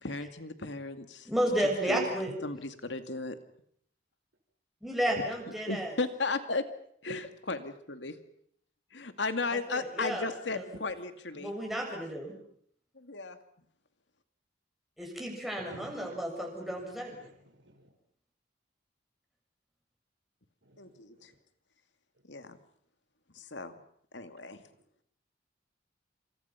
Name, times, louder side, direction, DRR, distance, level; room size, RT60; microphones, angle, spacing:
voice 1, 0.0-1.3 1.9-2.0 2.4-3.3 5.5-6.6 7.0-8.2 8.9-11.5 13.0-13.4 20.8-21.3 22.3-22.6 23.4-23.7 24.1-24.6, left 3 dB, 85° left, 9 dB, 2.4 m, -35 dB
voice 2, 1.3-2.3 4.8-6.0 9.5-10.3 10.5-10.6 11.4-12.3 15.0-17.2, right 1 dB, ahead, 0 dB, 7.2 m, -32 dB
voice 3, 15.6-16.2 16.6-16.7 17.2-17.8 20.6-21.2, right 1 dB, 85° right, 7 dB, 4.4 m, -52 dB
28.0 x 27.5 x 5.8 m, 0.65 s
head